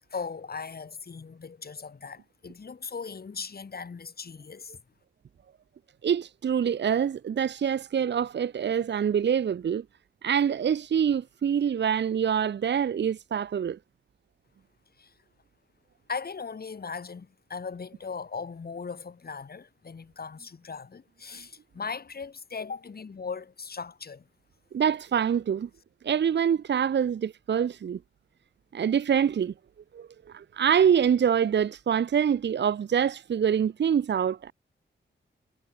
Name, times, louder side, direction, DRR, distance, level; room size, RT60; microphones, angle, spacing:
voice 1, 0.1-4.8 15.0-15.1 16.1-24.2, left 5 dB, 55° left, 2.9 m, -38 dB
voice 2, 6.0-9.8 10.2-13.8 24.7-25.7 26.0-28.0 28.7-29.5 29.9-34.5, right 8 dB, 65° right, 0.8 m, -25 dB
cardioid pair, 75°, 19 cm